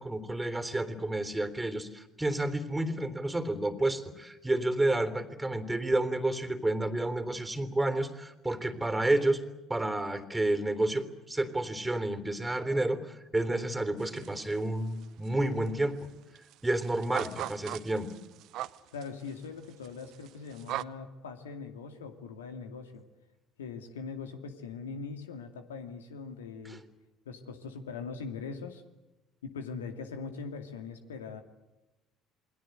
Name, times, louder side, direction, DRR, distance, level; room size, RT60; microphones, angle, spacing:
voice 1, 0.0-9.4 9.7-16.0 16.6-18.1 26.7-26.8, right 2 dB, 10° right, 10 dB, 3.5 m, -30 dB
sound 1, 14.0-14.6 14.9-15.7 16.0-16.1 16.4-20.8, right 14 dB, 55° right, 0.8 m, -39 dB
voice 2, 18.9-23.0 23.6-26.8 27.3-28.8 29.4-31.4, left 5 dB, 80° left, 7 dB, 2.4 m, -41 dB
28.5 x 21.5 x 8.1 m, 1.0 s
figure-of-eight pair, 55°, 0 cm